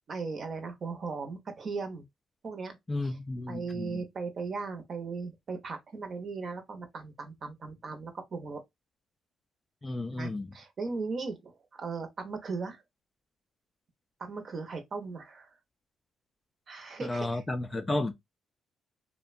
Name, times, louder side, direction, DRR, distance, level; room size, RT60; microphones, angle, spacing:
voice 1, 0.1-2.0 2.4-2.8 3.0-3.1 3.5-8.6 10.1-12.8 14.2-15.5 16.7-17.4, right 4 dB, 50° right, 0.7 m, -37 dB
voice 2, 2.9-4.0 9.8-10.5 17.0-18.1, left 2 dB, 25° left, 0.3 m, -32 dB
2.7 x 2.1 x 2.3 m
cardioid pair, 90°, 0 cm